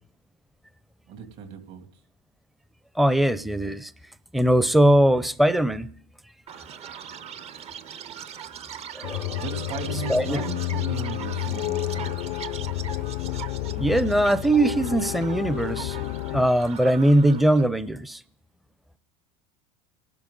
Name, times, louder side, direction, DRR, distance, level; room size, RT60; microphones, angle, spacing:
voice 1, 1.1-1.9 9.4-12.2, right 6 dB, 60° right, 5 dB, 2.8 m, -36 dB
voice 2, 3.0-3.9 4.3-5.9 8.9-9.4 10.1-10.4 13.8-18.2, right 1 dB, ahead, 15 dB, 0.5 m, -21 dB
Chirp tweet, 6.5-17.6, right 8 dB, 35° right, 0.7 m, -40 dB
sound 1, 9.0-16.5, left 16 dB, 75° left, 0.5 m, -30 dB
29.5 x 11.5 x 3.9 m, 0.65 s
supercardioid pair, 110°, 18 cm